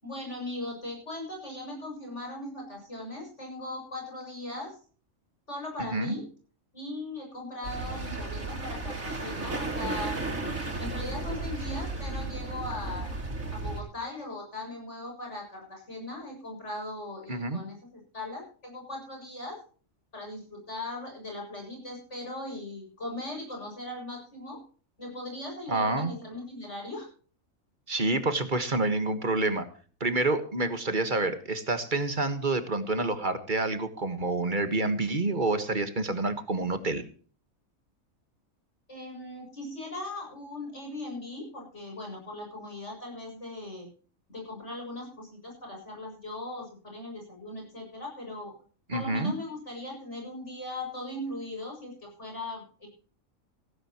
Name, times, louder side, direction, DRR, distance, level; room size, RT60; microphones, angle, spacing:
voice 1, 0.0-4.8 5.5-6.3 6.7-13.1 13.5-19.6 20.1-24.6 25.0-27.1 38.9-43.9 44.3-48.5 48.9-52.9, left 1 dB, 55° left, 0 dB, 7.9 m, -39 dB
sound 1, 7.6-13.8, right 2 dB, 75° right, 3.9 m, -34 dB
voice 2, 17.3-17.6 25.7-26.1 27.9-29.7 30.0-37.0 48.9-49.3, right 2 dB, 35° right, 10 dB, 1.7 m, -28 dB
16.5 x 15.5 x 3.0 m, 0.41 s
omnidirectional pair, 1.4 m